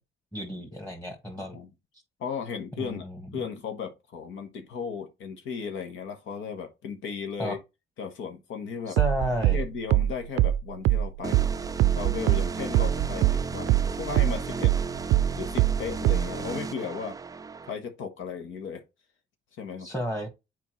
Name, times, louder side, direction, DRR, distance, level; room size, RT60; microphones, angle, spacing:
voice 1, 0.3-1.6 2.8-3.2 7.4-7.6 8.9-9.6 19.8-20.3, equal, 10° left, 1.7 m, -32 dB
voice 2, 2.2-3.1 3.3-7.6 8.0-9.0 9.5-11.5 11.9-14.7 15.3-17.2 17.7-18.8 19.6-19.9, left 6 dB, 85° left, 1.2 m, -35 dB
sound 1, 9.0-13.9 14.2-16.4, right 14 dB, 90° right, 0.4 m, -22 dB
sound 2, 11.2-17.7, right 4 dB, 20° right, 0.3 m, -34 dB
7.0 x 4.5 x 3.1 m
cardioid pair, 90°, 20 cm